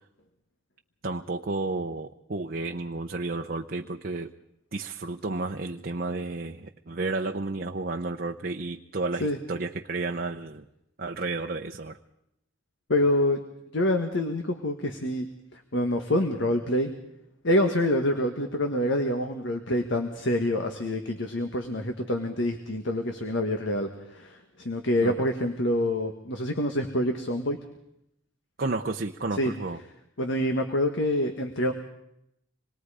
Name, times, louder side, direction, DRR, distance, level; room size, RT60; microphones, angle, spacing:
voice 1, 1.0-4.3 4.7-10.6 11.0-12.0 25.0-25.3 28.6-29.8, right 3 dB, 45° right, 4 dB, 0.8 m, -32 dB
voice 2, 12.9-13.4 13.7-16.9 17.4-27.6 29.4-29.5 30.2-31.7, left 1 dB, 65° left, 6 dB, 1.6 m, -26 dB
26.5 x 21.0 x 5.0 m, 0.80 s
head